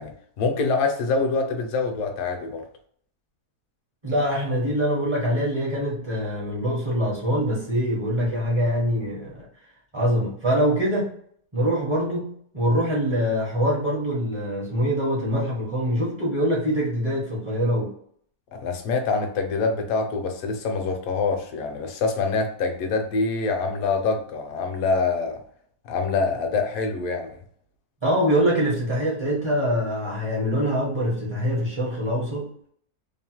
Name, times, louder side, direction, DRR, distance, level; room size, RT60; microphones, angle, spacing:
voice 1, 0.0-2.6 18.5-25.4 25.8-27.4, left 4 dB, 70° left, 4 dB, 1.0 m, -25 dB
voice 2, 4.0-9.4 9.9-11.1 11.5-17.9 28.0-32.5, equal, 30° right, -5 dB, 0.5 m, -24 dB
2.9 x 2.1 x 2.8 m, 0.62 s
omnidirectional pair, 1.7 m